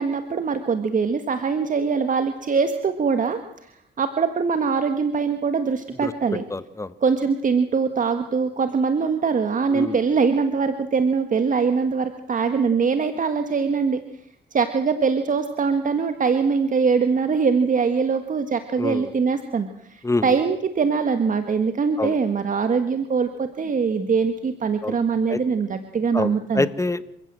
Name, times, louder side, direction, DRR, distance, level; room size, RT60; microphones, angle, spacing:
voice 1, 0.0-3.4 4.0-6.4 7.0-14.0 14.5-26.7, right 5 dB, 40° right, 8 dB, 1.8 m, -22 dB
voice 2, 6.5-6.9 9.7-10.0 18.8-19.1 20.0-20.3 22.0-22.2 24.8-25.0 25.3-25.4 26.1-27.0, left 2 dB, 15° left, 14 dB, 1.3 m, -26 dB
28.5 x 16.5 x 7.7 m, 0.77 s
cardioid pair, 90°, 20 cm